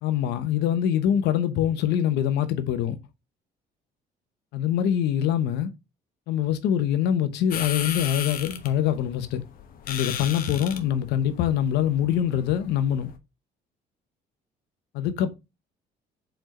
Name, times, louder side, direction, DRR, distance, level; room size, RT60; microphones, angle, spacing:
voice 1, 0.0-3.0 4.5-5.7 6.3-9.4 9.9-13.1 14.9-15.3, left 10 dB, 85° left, 1.0 m, -24 dB
sound 1, 7.5-13.2, left 9 dB, 60° left, 1.1 m, -36 dB
4.6 x 4.4 x 5.3 m
cardioid pair, 110°, 17 cm